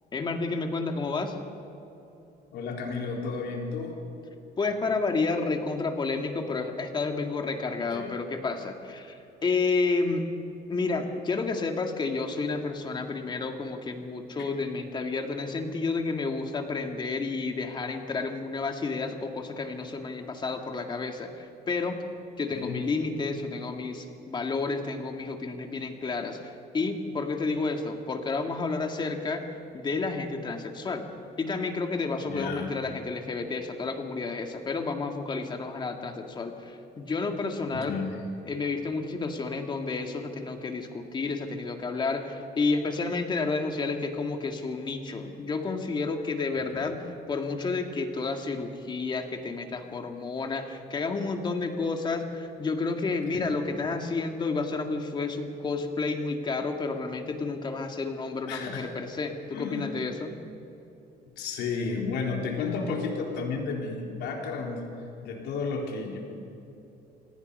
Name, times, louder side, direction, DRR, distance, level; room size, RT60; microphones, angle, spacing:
voice 1, 0.1-1.4 4.6-10.2 10.7-22.0 22.4-29.5 29.7-31.1 31.4-38.0 38.5-47.0 47.3-60.3, left 4 dB, 25° left, 4 dB, 1.9 m, -30 dB
voice 2, 2.5-4.0 7.9-8.1 22.5-22.8 32.2-32.7 37.7-38.2 46.7-46.9 53.3-53.5 58.5-58.9 59.5-59.9 61.4-64.8 65.2-66.2, left 4 dB, 80° left, 0 dB, 3.8 m, -32 dB
26.5 x 19.0 x 5.5 m, 3.0 s
cardioid pair, 150°, 17 cm